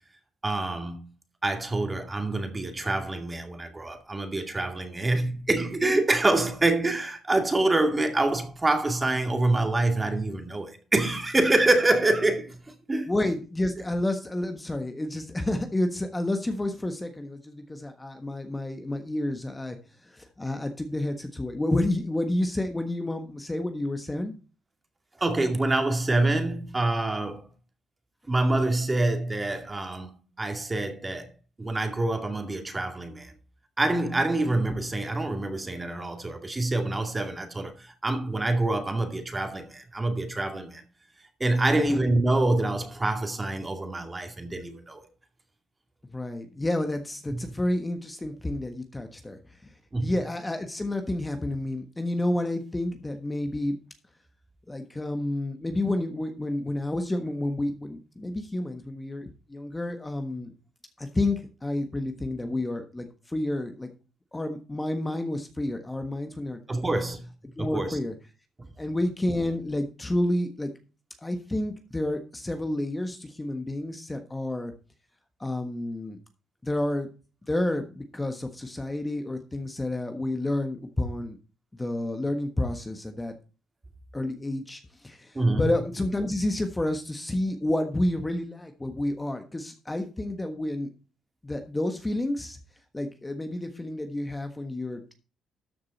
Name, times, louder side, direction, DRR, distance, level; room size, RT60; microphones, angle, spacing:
voice 1, 0.4-1.0 1.4-12.6 12.9-13.1 25.2-27.5 28.3-30.1 30.4-31.3 31.6-33.3 33.8-40.8 41.4-45.0 47.3-47.6 49.9-50.1 66.7-67.2 67.6-68.0 85.3-85.7, right 2 dB, 20° right, 2.3 m, -26 dB
voice 2, 13.1-19.8 20.0-24.3 41.7-42.0 46.1-49.4 50.0-53.8 54.7-60.5 61.0-63.9 64.3-67.0 67.6-68.1 68.8-70.7 71.2-74.7 75.4-76.2 76.6-77.1 77.5-81.4 81.8-83.3 84.1-90.9 91.4-92.6 92.9-95.1, left 1 dB, 15° left, 1.4 m, -30 dB
13.0 x 6.6 x 4.2 m
cardioid pair, 90°, 0 cm